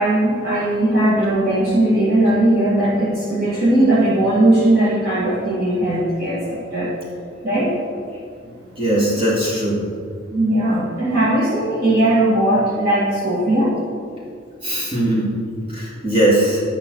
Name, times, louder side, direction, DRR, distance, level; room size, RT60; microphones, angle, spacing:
voice 1, 0.0-6.9 7.4-7.8 10.3-13.7, right 1 dB, 50° right, -9 dB, 2.2 m, -18 dB
voice 2, 8.8-9.8 14.6-15.3 15.7-16.6, right 1 dB, 30° right, -5 dB, 2.2 m, -19 dB
9.6 x 5.9 x 6.4 m, 2.2 s
head